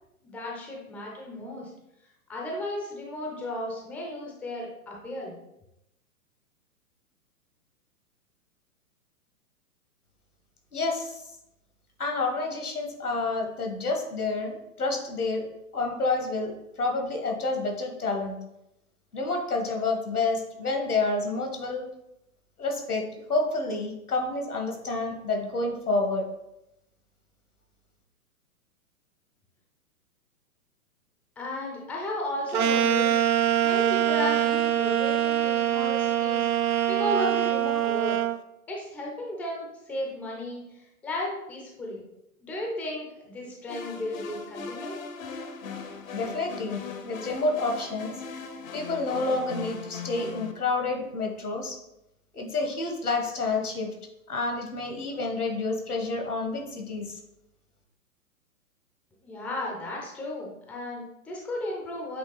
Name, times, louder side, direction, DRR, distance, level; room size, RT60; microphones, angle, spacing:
voice 1, 0.2-1.7 2.3-5.3 31.4-33.1 33.6-38.2 38.7-42.0 42.4-45.0 59.2-62.2, left 1 dB, 5° left, -2 dB, 0.5 m, -34 dB
voice 2, 10.7-11.2 12.0-15.5 15.7-18.4 19.1-21.8 22.6-26.2 46.1-48.1 48.7-51.8 52.3-53.9 54.3-57.2, left 3 dB, 85° left, 2 dB, 1.7 m, -29 dB
sound 1, 32.5-38.4, right 11 dB, 80° right, 0.6 m, -24 dB
sound 2, 43.7-50.5, left 5 dB, 60° left, 0.9 m, -39 dB
7.9 x 3.1 x 4.0 m, 0.85 s
figure-of-eight pair, 120°, 44 cm